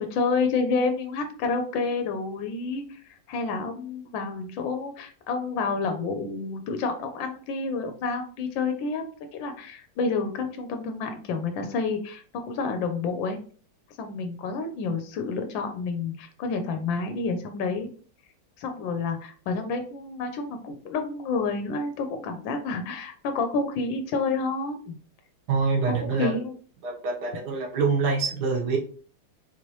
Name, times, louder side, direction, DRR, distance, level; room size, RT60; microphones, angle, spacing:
voice 1, 0.0-9.0 9.3-13.4 14.0-17.9 18.6-25.0 25.9-26.5, left 4 dB, 90° left, 6 dB, 1.3 m, -29 dB
voice 2, 25.5-26.4 26.8-28.8, right 4 dB, 60° right, -2 dB, 1.7 m, -25 dB
4.0 x 3.1 x 2.9 m, 0.43 s
omnidirectional pair, 2.0 m